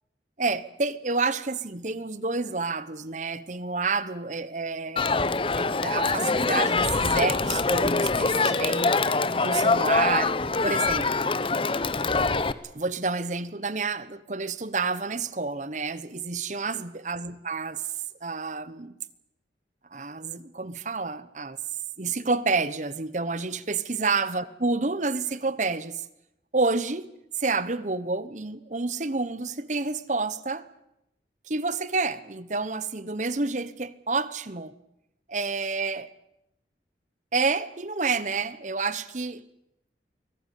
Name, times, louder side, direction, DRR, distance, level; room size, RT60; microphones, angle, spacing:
voice 1, 0.4-8.9 9.4-10.4 10.6-11.3 12.7-17.8 18.2-19.0 19.9-21.6 22.0-26.0 26.5-27.1 27.4-30.7 31.5-34.7 35.3-36.1 37.3-39.4, right 3 dB, 45° right, 1.0 m, -29 dB
Crowd, 5.0-12.5, left 3 dB, 30° left, 0.8 m, -24 dB
24.0 x 17.5 x 8.4 m
head